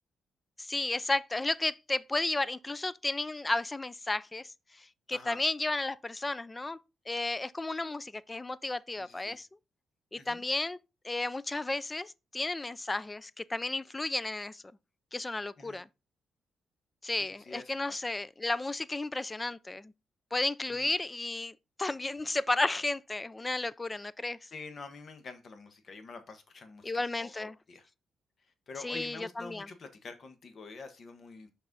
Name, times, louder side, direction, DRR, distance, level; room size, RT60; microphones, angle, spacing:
voice 1, 0.6-4.5 5.1-6.8 7.1-9.5 10.1-10.8 11.0-14.6 15.1-15.9 17.0-19.9 20.3-24.4 26.8-27.5 28.8-29.7, left 2 dB, 20° left, 0.4 m, -33 dB
voice 2, 9.0-9.4 10.1-10.4 15.6-15.8 17.1-18.0 20.7-20.9 24.5-27.9 28.4-31.5, left 4 dB, 50° left, 1.1 m, -47 dB
6.0 x 4.2 x 3.8 m
cardioid pair, 85°, 0 cm